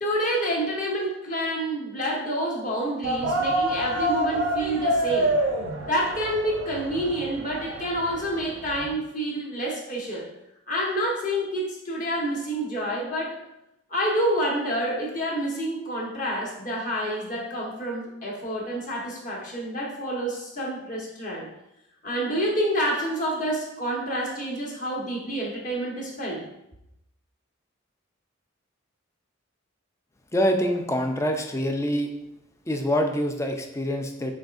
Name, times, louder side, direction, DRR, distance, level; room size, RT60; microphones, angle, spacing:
voice 1, 0.0-5.3 5.8-10.2 10.7-13.4 13.9-21.5 22.0-26.4, right 1 dB, 40° left, -3 dB, 1.1 m, -28 dB
sound 1, 3.0-8.9, right 1 dB, 65° right, 0.6 m, -27 dB
voice 2, 30.3-32.1 32.7-34.3, equal, 15° left, 4 dB, 0.4 m, -25 dB
6.2 x 3.2 x 2.5 m, 0.85 s
head